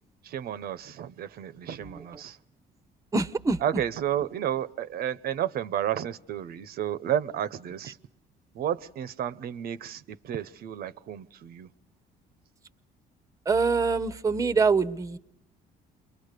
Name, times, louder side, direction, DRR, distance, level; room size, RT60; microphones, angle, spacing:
voice 1, 0.2-2.4 3.6-8.0 8.5-11.7, right 10 dB, 65° right, 0.9 m, -32 dB
voice 2, 3.1-3.6 13.5-15.2, right 4 dB, 20° right, 0.9 m, -24 dB
29.5 x 23.0 x 6.7 m
cardioid pair, 110°, 17 cm